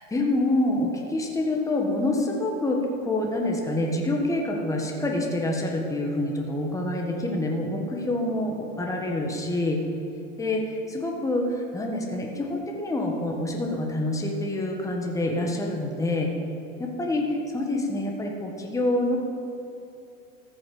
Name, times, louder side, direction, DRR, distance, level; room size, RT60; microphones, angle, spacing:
voice 1, 0.1-9.8 10.4-16.3 16.8-19.2, left 1 dB, 10° left, 0 dB, 1.6 m, -27 dB
14.0 x 6.5 x 7.8 m, 2.8 s
hypercardioid pair, 120°, 41 cm